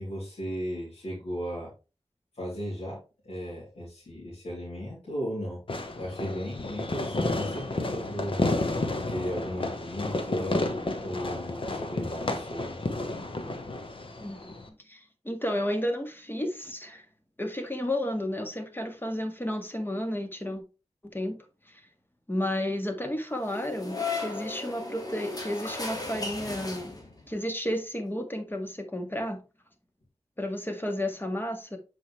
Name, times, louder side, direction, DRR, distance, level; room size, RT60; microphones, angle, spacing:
voice 1, 0.0-1.7 2.3-5.6 6.0-8.4 9.1-10.7 11.0-12.9, equal, 75° left, 3.0 m, -35 dB
Fireworks, 5.7-14.7, left 2 dB, 55° left, 1.2 m, -31 dB
voice 2, 14.2-17.0 17.4-20.6 21.1-21.4 21.7-21.8 22.3-27.0 27.3-29.4 30.4-31.8, left 1 dB, 20° left, 1.7 m, -32 dB
sound 1, 23.4-27.3, left 3 dB, 35° left, 2.0 m, -35 dB
7.6 x 5.0 x 3.2 m
wide cardioid pair, 70°, 11 cm